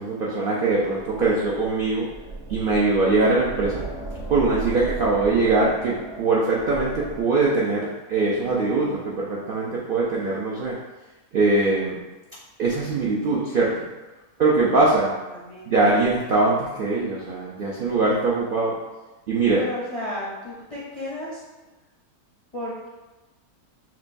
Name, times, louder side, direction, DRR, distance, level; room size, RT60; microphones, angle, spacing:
voice 1, 0.0-2.1 2.5-3.8 4.3-10.8 11.3-12.0 12.6-13.8 14.4-15.1 15.7-18.8 19.3-19.6, right 3 dB, 75° right, -5 dB, 0.4 m, -22 dB
sound 1, 0.8-7.2, right 2 dB, 50° right, 1.0 m, -37 dB
voice 2, 14.7-15.9 19.6-21.4 22.5-22.9, left 1 dB, 45° left, -7 dB, 0.4 m, -34 dB
6.0 x 2.2 x 2.5 m, 1.1 s
omnidirectional pair, 1.6 m